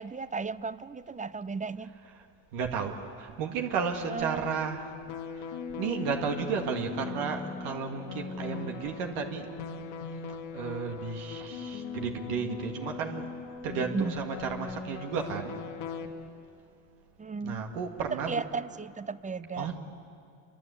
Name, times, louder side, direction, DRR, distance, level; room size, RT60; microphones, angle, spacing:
voice 1, 0.0-1.9 4.1-4.6 13.9-14.1 17.2-17.6 18.1-19.7, right 4 dB, 15° right, 16 dB, 0.6 m, -34 dB
voice 2, 2.5-4.9 5.8-9.5 10.5-13.3 13.6-15.5 17.4-18.5 19.6-19.8, right 6 dB, 85° right, 3 dB, 2.1 m, -33 dB
sound 1, 4.0-16.1, left 5 dB, 85° left, 2.0 m, -39 dB
27.5 x 23.5 x 8.4 m, 2.4 s
supercardioid pair, 95°, 49 cm